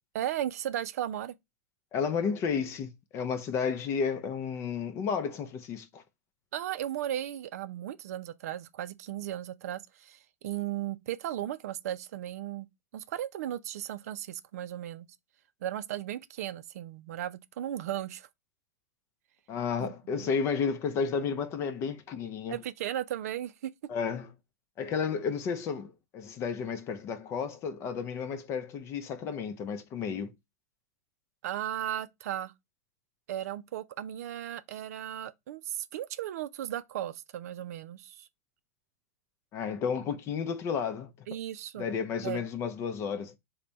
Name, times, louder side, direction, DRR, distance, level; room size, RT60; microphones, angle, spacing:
voice 1, 0.1-1.4 6.5-12.7 12.9-15.1 15.6-18.3 19.8-20.4 22.5-23.7 31.4-32.5 33.3-38.3 41.3-41.9 42.2-42.4, right 12 dB, 70° right, 0.4 m, -36 dB
voice 2, 1.9-6.0 19.5-22.6 23.9-24.3 24.8-30.3 39.5-41.1 41.8-43.4, left 6 dB, 30° left, 0.5 m, -32 dB
3.3 x 2.2 x 3.9 m
hypercardioid pair, 130°, 9 cm